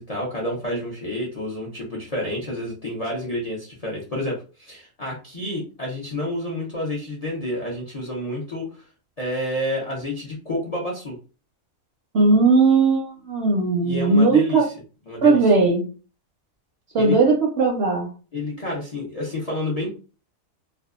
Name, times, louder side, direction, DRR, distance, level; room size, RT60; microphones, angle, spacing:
voice 1, 0.0-8.8 9.2-11.2 13.8-14.7 15.1-15.5 17.0-17.2 18.3-19.9, left 1 dB, 50° left, -3 dB, 0.4 m, -29 dB
voice 2, 12.1-14.7 15.2-15.9 16.9-18.1, right 3 dB, 65° right, 1 dB, 0.7 m, -18 dB
2.6 x 2.2 x 2.4 m, 0.35 s
omnidirectional pair, 1.5 m